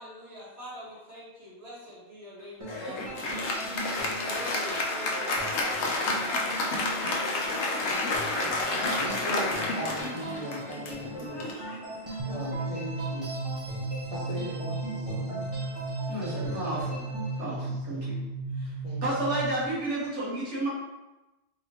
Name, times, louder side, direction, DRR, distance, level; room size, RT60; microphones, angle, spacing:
voice 1, 0.0-6.4, equal, 65° right, -9 dB, 1.9 m, -44 dB
sound 1, 2.6-17.4, right 1 dB, 30° right, 1.0 m, -40 dB
Applause, 2.7-12.5, left 2 dB, 75° left, 0.9 m, -30 dB
voice 2, 9.0-11.5 12.2-13.3 14.1-15.5 16.1-16.7 17.4-17.8 18.8-19.3, equal, 40° left, -6 dB, 0.6 m, -40 dB
sound 2, 12.2-19.8, right 3 dB, 45° right, 0.6 m, -35 dB
voice 3, 16.1-17.1 17.4-18.2 18.6-18.7 19.0-20.7, right 2 dB, 80° right, -8 dB, 1.7 m, -31 dB
3.9 x 2.9 x 3.0 m, 1.0 s
omnidirectional pair, 1.2 m